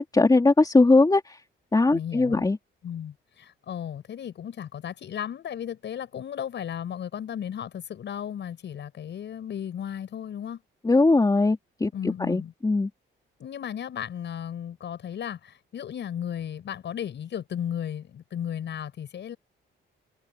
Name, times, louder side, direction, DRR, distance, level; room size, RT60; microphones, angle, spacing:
voice 1, 0.0-1.4 1.7-2.6 10.8-11.9 12.3-12.9, left 3 dB, 20° left, 3.1 m, -20 dB
voice 2, 1.9-2.4 2.8-10.6 11.9-12.5 13.4-19.4, left 9 dB, 65° left, 7.8 m, -35 dB
cardioid pair, 90°, 20 cm